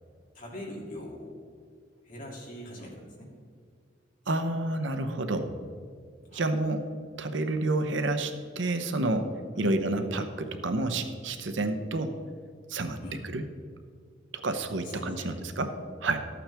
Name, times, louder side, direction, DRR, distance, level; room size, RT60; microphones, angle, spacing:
voice 1, 0.3-1.4 2.0-3.3 6.3-6.5 9.6-9.7 13.0-13.2 14.8-15.3, left 1 dB, 45° left, -3 dB, 2.6 m, -42 dB
voice 2, 4.3-5.5 6.3-6.8 7.2-9.3 9.6-12.1 12.7-13.0 13.2-13.4 14.4-16.2, right 2 dB, 75° right, 7 dB, 0.8 m, -29 dB
13.0 x 8.6 x 3.4 m, 2.1 s
head